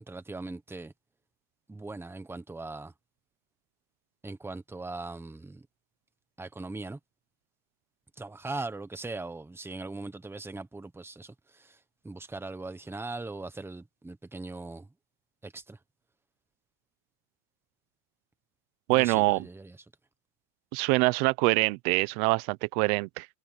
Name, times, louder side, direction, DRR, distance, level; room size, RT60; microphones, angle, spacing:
voice 1, 0.1-0.9 1.7-2.9 4.2-5.7 6.4-7.0 8.2-11.8 12.0-14.9 15.4-15.8 18.9-19.8, right 3 dB, 5° right, 1.0 m, -40 dB
voice 2, 18.9-19.4 20.7-23.3, right 24 dB, 85° right, 0.9 m, -25 dB
cardioid pair, 160°, 44 cm